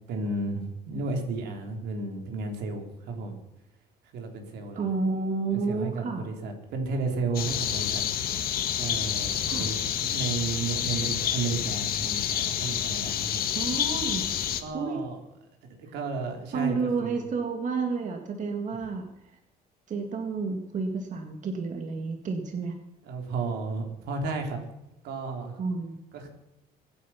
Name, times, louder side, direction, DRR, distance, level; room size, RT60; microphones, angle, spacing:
voice 1, 0.1-3.4 4.1-4.8 5.7-8.0 8.8-13.5 14.6-15.2 15.9-16.8 17.0-17.2 23.0-24.6 25.0-25.6 26.1-26.3, right 3 dB, 80° right, 3 dB, 3.8 m, -33 dB
voice 2, 4.8-6.2 9.5-9.7 13.5-14.3 14.7-15.0 16.5-19.1 19.9-22.8 25.6-26.0, right 4 dB, 45° right, 4 dB, 2.0 m, -30 dB
sound 1, 7.3-14.6, left 9 dB, 65° left, 1.9 m, -29 dB
23.5 x 9.3 x 5.8 m, 0.90 s
cardioid pair, 110°, 17 cm